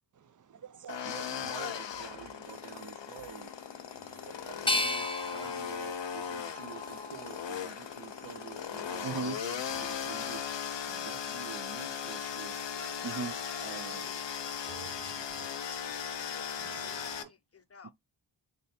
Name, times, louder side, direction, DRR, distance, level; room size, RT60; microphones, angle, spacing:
voice 1, 0.2-1.1 2.2-2.3 3.9-4.7 5.4-5.5 9.0-9.4 10.9-11.1 13.0-13.3 14.7-15.5 16.6-17.3, right 5 dB, 45° right, 0.5 m, -42 dB
sound 1, 0.9-17.2, left 8 dB, 70° left, 0.7 m, -38 dB
voice 2, 1.0-3.5 4.5-10.4 10.9-12.6 13.6-14.1, right 7 dB, 80° right, 0.8 m, -48 dB
sound 2, 2.4-15.3, right 1 dB, 5° right, 1.0 m, -60 dB
sound 3, 4.7-7.6 8.1-9.0, left 2 dB, 15° left, 0.3 m, -36 dB
voice 3, 12.7-15.6 16.3-17.9, left 6 dB, 35° left, 0.7 m, -52 dB
3.3 x 2.7 x 4.2 m
wide cardioid pair, 85°, 44 cm